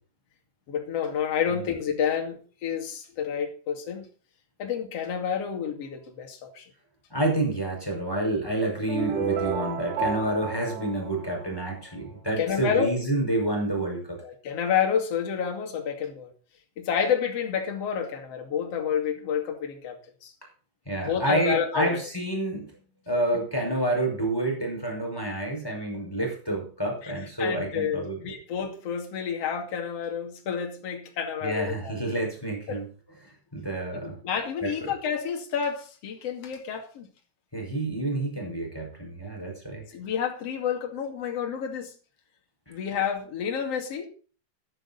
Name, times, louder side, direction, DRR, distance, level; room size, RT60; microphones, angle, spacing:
voice 1, 0.7-4.1 4.6-6.7 12.4-12.9 14.2-16.3 16.8-20.3 21.0-22.0 27.0-31.9 32.7-32.8 33.9-37.1 39.9-41.9 42.7-44.1, left 7 dB, 40° left, 2 dB, 2.8 m, -29 dB
voice 2, 7.1-14.2 20.8-22.7 23.1-28.2 31.4-32.9 33.5-34.2 34.6-34.7 37.5-39.8, right 1 dB, 5° left, 0 dB, 4.6 m, -28 dB
sound 1, 8.9-11.9, right 5 dB, 80° right, 5.4 m, -31 dB
13.0 x 11.0 x 4.1 m, 0.39 s
omnidirectional pair, 5.4 m